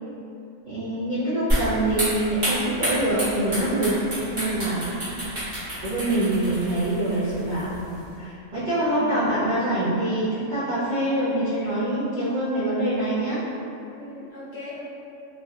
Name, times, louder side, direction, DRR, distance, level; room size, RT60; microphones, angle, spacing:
voice 1, 0.6-3.9 4.3-4.9 5.8-7.7 8.2-13.4, right 1 dB, 55° right, -13 dB, 0.5 m, -25 dB
sound 1, 1.5-8.1, equal, 35° right, 1.2 m, -30 dB
voice 2, 5.0-5.4 8.9-9.3 14.0-14.9, equal, 65° left, -9 dB, 0.7 m, -39 dB
3.2 x 2.5 x 2.3 m, 2.7 s
omnidirectional pair, 1.4 m